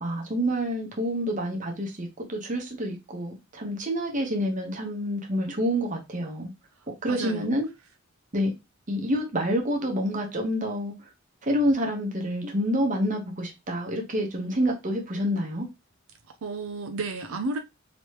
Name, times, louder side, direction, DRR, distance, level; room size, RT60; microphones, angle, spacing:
voice 1, 0.0-6.5 7.0-7.7 8.3-8.5 8.9-10.9 11.4-15.7, equal, 40° right, 1.0 m, -28 dB
voice 2, 6.8-7.5 16.4-17.6, right 3 dB, 90° right, 0.5 m, -32 dB
3.1 x 2.9 x 3.1 m
head